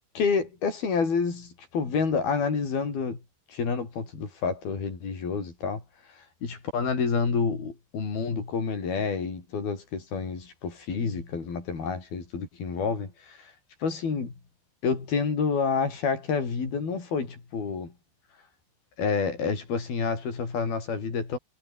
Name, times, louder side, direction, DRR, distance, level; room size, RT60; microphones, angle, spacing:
voice 1, 0.2-3.2 3.5-5.8 6.1-13.5 13.8-14.3 14.8-17.9 19.0-21.4, left 5 dB, 80° left, 7.8 m, -29 dB
omnidirectional pair, 4.3 m